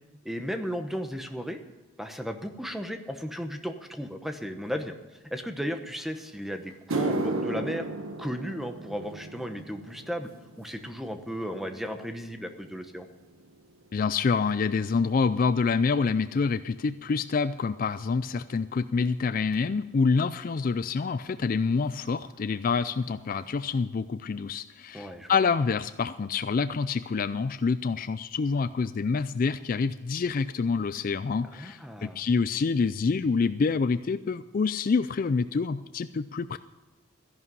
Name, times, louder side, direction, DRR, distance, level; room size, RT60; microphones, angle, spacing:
voice 1, 0.2-1.6 2.0-5.0 5.3-7.9 8.2-10.3 10.6-13.1 24.9-25.3 31.5-32.2, equal, ahead, 6 dB, 1.0 m, -35 dB
sound 1, 6.2-6.3 6.7-15.2 15.5-15.9 16.7-16.8 19.5-19.6 21.3-21.4 21.5-21.8 22.1-22.6 23.0-23.1 23.6-23.7, right 2 dB, 85° right, 1.3 m, -36 dB
voice 2, 13.9-36.6, left 5 dB, 40° left, 13 dB, 0.3 m, -27 dB
14.0 x 11.0 x 5.5 m, 1.2 s
head